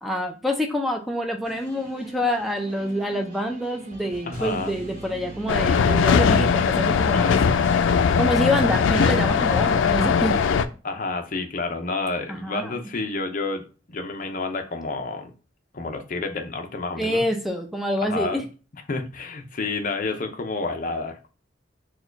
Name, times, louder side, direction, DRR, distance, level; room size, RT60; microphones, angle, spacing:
voice 1, 0.0-7.4 8.1-10.4 12.3-12.7 17.0-18.4, equal, ahead, 3 dB, 0.5 m, -26 dB
sound 1, 1.4-8.2, right 1 dB, 45° right, 1.1 m, -41 dB
voice 2, 4.3-4.7 7.1-7.4 10.8-15.3 15.7-17.3 18.0-18.4 18.9-21.3, left 3 dB, 45° left, 5 dB, 0.6 m, -30 dB
sound 2, 5.5-10.6, left 6 dB, 90° left, 0.4 m, -20 dB
4.5 x 2.3 x 4.5 m, 0.35 s
head